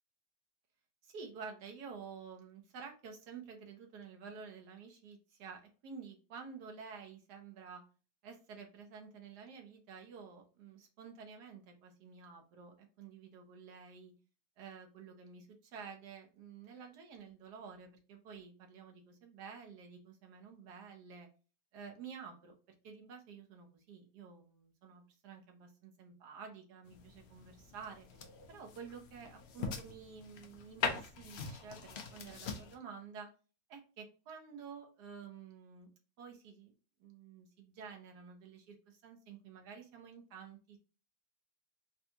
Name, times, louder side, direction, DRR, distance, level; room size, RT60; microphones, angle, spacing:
voice 1, 1.0-7.8 8.2-14.1 14.6-21.3 21.7-22.6 22.8-28.2 28.5-33.3 33.7-35.9 36.2-36.7 37.0-40.8, right 6 dB, 85° right, 3 dB, 1.4 m, -51 dB
sound 1, 26.9-32.8, left 5 dB, 70° left, 0.6 m, -42 dB
4.1 x 2.2 x 2.7 m, 0.35 s
omnidirectional pair, 1.7 m